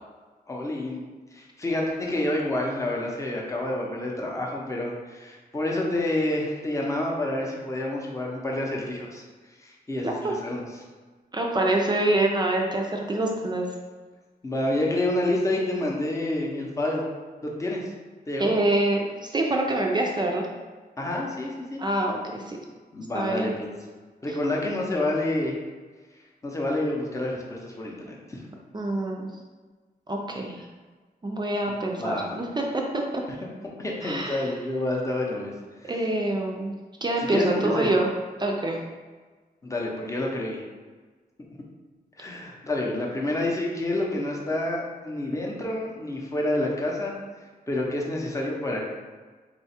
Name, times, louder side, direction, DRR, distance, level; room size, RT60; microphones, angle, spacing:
voice 1, 0.5-1.0 1.3-9.2 9.6-10.8 14.4-17.0 17.4-17.8 18.3-18.5 21.0-21.8 22.9-23.7 24.2-25.5 26.4-28.4 32.0-32.3 33.8-35.5 35.8-36.0 37.2-37.9 39.6-40.6 42.2-47.1 47.7-48.8, left 1 dB, 20° left, -2 dB, 0.6 m, -28 dB
voice 2, 10.0-10.3 11.3-13.7 18.4-20.5 21.8-22.6 23.1-23.5 28.7-29.3 30.1-30.6 31.2-33.2 34.0-34.5 35.9-36.7 37.0-38.1 38.4-38.8, right 2 dB, 25° right, 0 dB, 0.4 m, -26 dB
3.9 x 2.3 x 4.2 m, 1.4 s
wide cardioid pair, 150°, 17 cm